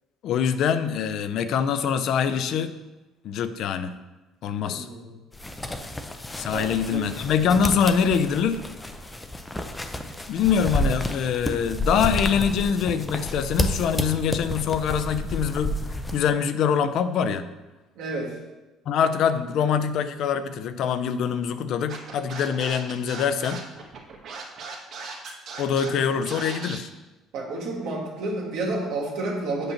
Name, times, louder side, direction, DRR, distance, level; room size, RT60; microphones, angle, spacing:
voice 1, 0.2-2.7 3.2-4.0 4.4-4.9 6.4-8.7 10.3-15.8 16.1-17.5 18.9-23.6 25.6-26.9, left 7 dB, 65° left, 12 dB, 0.4 m, -24 dB
voice 2, 4.6-5.1 6.5-7.1 18.0-18.4 27.3-29.7, right 2 dB, 75° right, -3 dB, 1.8 m, -30 dB
sound 1, 5.3-16.2, left 1 dB, 10° left, 0.5 m, -30 dB
Scratching (performance technique), 21.9-26.8, right 4 dB, 55° right, 1.2 m, -38 dB
7.9 x 3.0 x 5.7 m, 1.1 s
cardioid pair, 115°, 0 cm